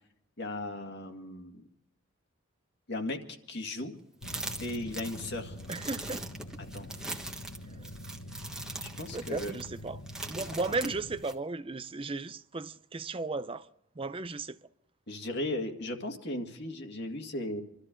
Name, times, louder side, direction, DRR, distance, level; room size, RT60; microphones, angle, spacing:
voice 1, 0.4-1.6 2.9-3.2 3.5-4.0 4.6-5.6 6.7-6.9 8.8-9.5 15.1-17.6, left 1 dB, 55° left, 2.0 m, -36 dB
sound 1, 4.2-11.2, left 1 dB, 75° left, 1.1 m, -45 dB
sound 2, 4.2-11.3, right 2 dB, 5° right, 1.4 m, -41 dB
voice 2, 5.7-6.3 7.7-7.9 9.1-10.0 10.3-13.7 14.0-14.6, right 3 dB, 25° right, 0.5 m, -35 dB
26.5 x 13.0 x 3.8 m
head